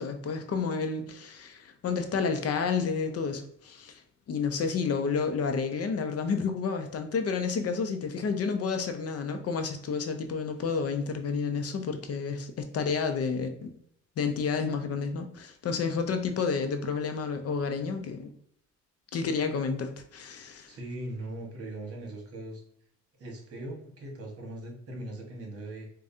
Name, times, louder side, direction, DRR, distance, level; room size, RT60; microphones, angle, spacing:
voice 1, 0.0-4.0 4.3-13.7 14.2-18.3 19.1-20.7, left 5 dB, 55° left, 6 dB, 0.6 m, -30 dB
voice 2, 20.7-22.6 23.2-25.9, right 1 dB, 50° right, 1 dB, 1.4 m, -40 dB
4.8 x 2.3 x 2.6 m, 0.68 s
cardioid pair, 90°, 30 cm